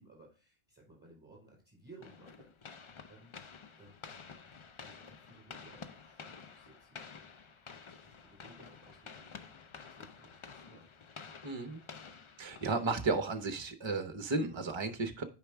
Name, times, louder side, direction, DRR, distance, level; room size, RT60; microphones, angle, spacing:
voice 1, 0.0-3.3 3.8-4.0 4.8-7.2 7.6-10.9 12.0-13.0, right 2 dB, 10° right, 4.5 m, -59 dB
sound 1, 2.0-13.3, left 5 dB, 40° left, 0.4 m, -51 dB
voice 2, 11.4-11.8 12.4-15.2, right 3 dB, 30° right, 0.8 m, -34 dB
8.8 x 4.9 x 3.4 m
omnidirectional pair, 1.0 m